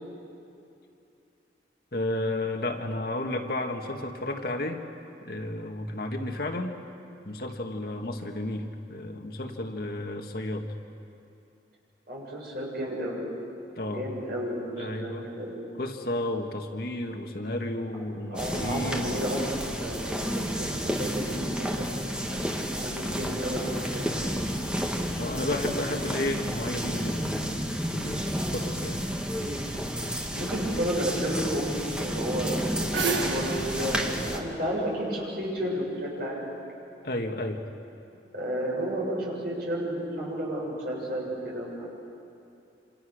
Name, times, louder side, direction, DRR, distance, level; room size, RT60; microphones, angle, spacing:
voice 1, 1.9-4.8 5.2-6.8 7.2-10.7 13.8-14.0 14.8-15.3 15.8-19.2 25.2-27.6 27.9-29.1 37.0-37.6, left 1 dB, 55° left, 3 dB, 1.8 m, -32 dB
voice 2, 12.1-13.2 13.9-15.8 18.3-19.4 19.8-22.0 22.2-24.1 30.3-32.6 32.9-36.4 38.3-41.9, equal, 55° right, -3 dB, 7.6 m, -32 dB
sound 1, 18.3-34.4, equal, 5° right, 1.6 m, -31 dB
sound 2, 32.9-35.6, right 5 dB, 85° right, 1.7 m, -33 dB
28.0 x 26.5 x 6.5 m, 2.7 s
head